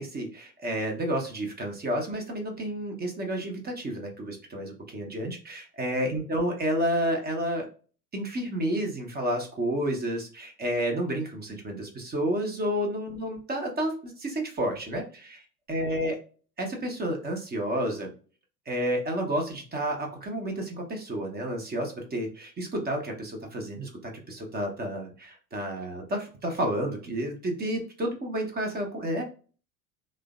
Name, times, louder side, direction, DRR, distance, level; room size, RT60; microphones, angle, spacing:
voice 1, 0.0-7.7 8.1-16.2 16.6-18.1 18.7-29.2, right 1 dB, 20° right, 2 dB, 0.7 m, -30 dB
3.2 x 2.1 x 2.3 m, 0.39 s
figure-of-eight pair, 70°, 49 cm